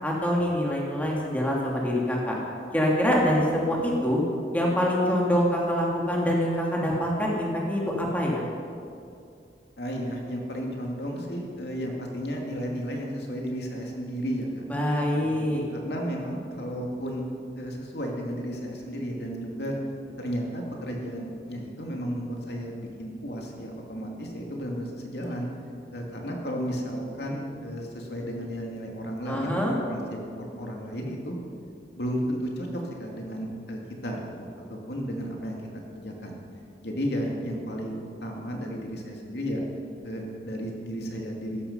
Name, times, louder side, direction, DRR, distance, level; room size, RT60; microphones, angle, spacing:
voice 1, 0.0-2.4 2.7-4.2 4.5-8.4 14.7-15.6 29.3-29.7, equal, 10° left, -3 dB, 2.5 m, -25 dB
voice 2, 9.8-14.6 15.2-15.4 15.7-17.2 17.6-19.7 20.2-25.5 25.9-30.0 30.4-31.4 32.0-35.6 35.9-36.4 36.8-39.6 40.0-41.6, equal, 70° left, 0 dB, 2.6 m, -33 dB
17.0 x 13.5 x 5.6 m, 2.4 s
head